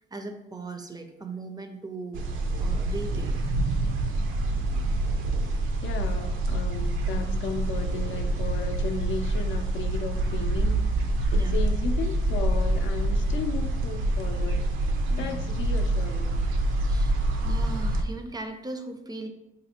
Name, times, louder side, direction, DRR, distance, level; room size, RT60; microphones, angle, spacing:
voice 1, 0.1-2.3 2.6-3.4 11.4-11.5 15.2-15.4 16.8-17.2 17.4-19.3, right 3 dB, 20° right, 6 dB, 0.4 m, -38 dB
sound 1, 2.1-18.0, right 2 dB, 85° right, 0.5 m, -26 dB
voice 2, 5.8-11.0 11.3-14.7 15.1-16.4, left 5 dB, 70° left, 6 dB, 0.5 m, -35 dB
4.1 x 2.5 x 2.8 m, 0.92 s
cardioid pair, 90°, 20 cm